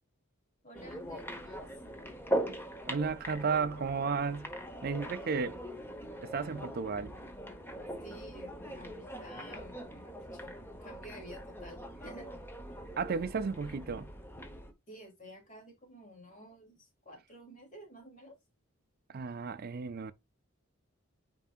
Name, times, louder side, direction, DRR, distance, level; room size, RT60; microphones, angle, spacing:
voice 1, 0.6-1.7 8.0-12.3 14.9-18.4, equal, 40° left, 2.9 m, -51 dB
sound 1, 0.7-14.7, right 1 dB, 10° left, 1.0 m, -41 dB
voice 2, 2.9-4.5 4.8-5.6 6.2-7.1 13.0-14.1 19.1-20.1, right 5 dB, 45° right, 0.5 m, -33 dB
9.3 x 4.5 x 2.4 m
head